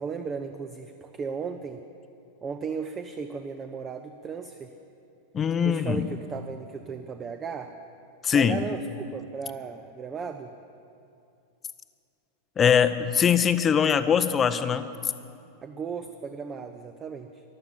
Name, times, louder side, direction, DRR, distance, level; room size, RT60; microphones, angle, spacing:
voice 1, 0.0-1.8 2.4-4.7 5.6-7.7 8.3-10.5 15.6-17.4, right 5 dB, 25° right, 8 dB, 0.6 m, -35 dB
voice 2, 5.3-6.0 8.2-8.6 12.6-15.1, left 7 dB, 25° left, 12 dB, 0.7 m, -22 dB
14.5 x 11.5 x 7.5 m, 2.6 s
figure-of-eight pair, 90°, 0 cm